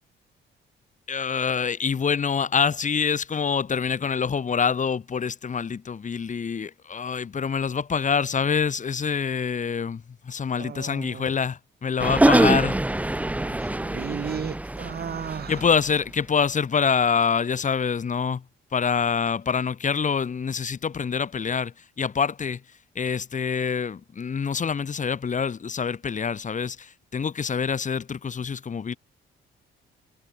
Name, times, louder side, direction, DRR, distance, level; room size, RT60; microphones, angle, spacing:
voice 1, 1.1-12.8 15.5-18.4 18.7-22.6 23.0-28.9, left 6 dB, 40° left, 2.1 m, -26 dB
voice 2, 10.6-11.3 13.4-15.6, right 7 dB, 50° right, 7.3 m, -35 dB
sound 1, 12.0-15.7, right 1 dB, 5° right, 0.9 m, -23 dB
cardioid pair, 90°, 20 cm